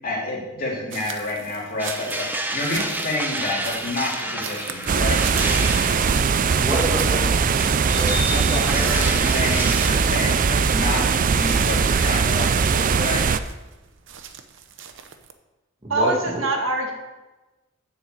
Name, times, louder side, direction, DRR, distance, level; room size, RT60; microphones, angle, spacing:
voice 1, 0.0-5.2 8.3-13.2, left 2 dB, 45° left, -5 dB, 3.3 m, -29 dB
sound 1, 0.9-15.3, right 8 dB, 70° right, 0.8 m, -38 dB
sound 2, 1.8-9.9, right 1 dB, 10° right, 0.9 m, -31 dB
sound 3, 4.9-13.4, right 5 dB, 45° right, 0.4 m, -20 dB
voice 2, 6.6-9.1 15.8-16.3, right 1 dB, 25° right, -2 dB, 1.9 m, -29 dB
voice 3, 15.9-16.9, right 2 dB, 90° right, 2 dB, 1.7 m, -23 dB
7.1 x 6.6 x 7.9 m, 1.1 s
head